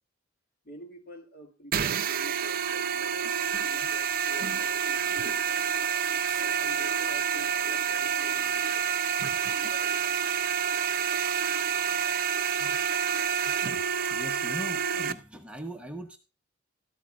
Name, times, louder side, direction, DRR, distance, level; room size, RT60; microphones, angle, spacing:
voice 1, 0.6-5.7 6.3-9.0 9.5-9.9, left 1 dB, 50° left, 2.0 m, -48 dB
sound 1, 1.7-15.1, right 7 dB, 45° right, 0.5 m, -28 dB
sound 2, 3.7-9.3, equal, 20° left, 7.0 m, -59 dB
voice 2, 14.0-16.2, equal, 5° right, 0.9 m, -40 dB
13.0 x 13.0 x 2.4 m
head